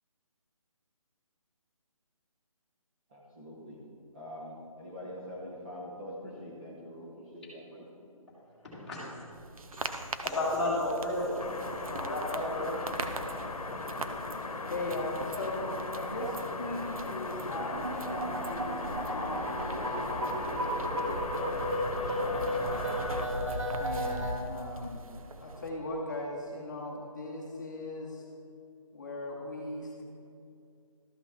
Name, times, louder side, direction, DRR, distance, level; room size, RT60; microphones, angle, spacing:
voice 1, 3.1-3.8 4.1-7.8, equal, 20° right, -6 dB, 0.8 m, -44 dB
voice 2, 8.7-9.0 9.7-11.3 11.9-12.7, left 1 dB, ahead, -14 dB, 1.8 m, -32 dB
sound 1, 9.3-25.7, right 3 dB, 75° right, 0.8 m, -44 dB
sound 2, 11.4-23.3, left 3 dB, 85° left, 1.0 m, -38 dB
voice 3, 14.7-19.4 19.7-22.9 23.7-25.0 25.4-28.2 28.9-30.0, left 1 dB, 30° left, -2 dB, 0.9 m, -39 dB
sound 3, 17.6-24.3, equal, 60° right, 1.9 m, -33 dB
13.0 x 5.8 x 3.5 m, 2.6 s
hypercardioid pair, 170°, 18 cm